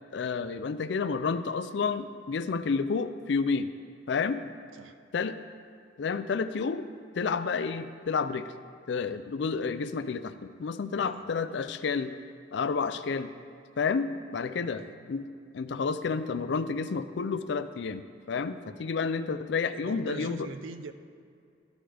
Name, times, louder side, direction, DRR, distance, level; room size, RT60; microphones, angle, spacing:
voice 1, 0.1-3.7 4.1-4.4 5.1-5.4 6.0-6.8 7.2-8.5 8.9-12.2 12.5-13.3 13.8-14.8 15.1-15.2 15.5-20.5, left 5 dB, 60° left, 11 dB, 0.4 m, -30 dB
voice 2, 14.6-15.0 19.7-20.9, right 4 dB, 85° right, 10 dB, 0.6 m, -43 dB
13.0 x 11.0 x 3.4 m, 2.4 s
head